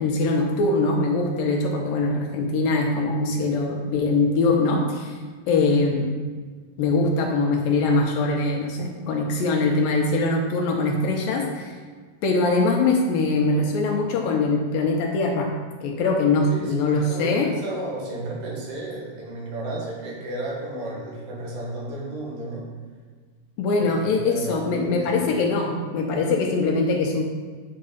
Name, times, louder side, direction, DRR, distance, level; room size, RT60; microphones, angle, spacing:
voice 1, 0.0-5.2 5.5-6.1 6.8-11.8 12.2-15.5 15.8-17.5 23.6-27.3, left 3 dB, 75° left, 1 dB, 2.3 m, -22 dB
voice 2, 16.5-22.7 23.7-25.2, right 2 dB, 80° right, -3 dB, 3.8 m, -33 dB
9.4 x 6.6 x 4.0 m, 1.5 s
omnidirectional pair, 4.5 m